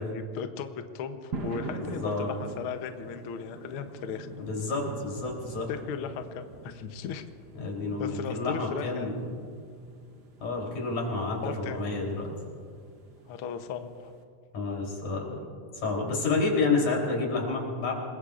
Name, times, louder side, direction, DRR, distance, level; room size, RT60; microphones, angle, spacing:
voice 1, 0.0-4.5 5.7-7.2 8.0-9.4 11.4-11.9 13.3-14.1, left 7 dB, 85° left, 7 dB, 1.1 m, -37 dB
sound 1, 1.3-14.2, right 3 dB, 65° right, 1.0 m, -44 dB
voice 2, 4.4-5.7 7.5-9.2 10.4-12.3 14.5-15.4 15.8-17.9, left 3 dB, 65° left, -1 dB, 5.0 m, -29 dB
27.5 x 21.0 x 2.5 m, 2.3 s
omnidirectional pair, 3.7 m